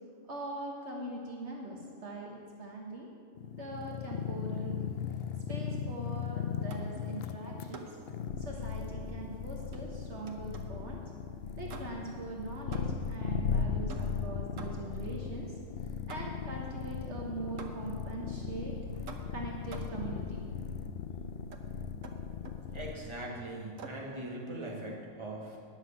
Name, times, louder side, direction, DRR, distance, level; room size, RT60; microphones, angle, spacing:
voice 1, 0.3-3.1 3.4-4.7 5.5-8.0 8.4-11.0 11.6-15.6 16.1-20.5, right 2 dB, 60° right, -1 dB, 1.5 m, -42 dB
sound 1, 3.4-22.9, left 6 dB, 60° left, 0.7 m, -37 dB
sound 2, 6.7-7.0 7.7-8.1 9.7-10.8 11.7-12.2 12.7-13.2 13.9-15.0 16.1-16.6 17.6-18.0 19.1-20.1 21.5-21.7 22.0-22.7 23.8-24.1, right 4 dB, 90° right, 1.3 m, -48 dB
voice 2, 22.7-25.6, right 1 dB, 20° right, -4 dB, 2.0 m, -41 dB
10.5 x 6.4 x 8.3 m, 2.2 s
omnidirectional pair, 1.3 m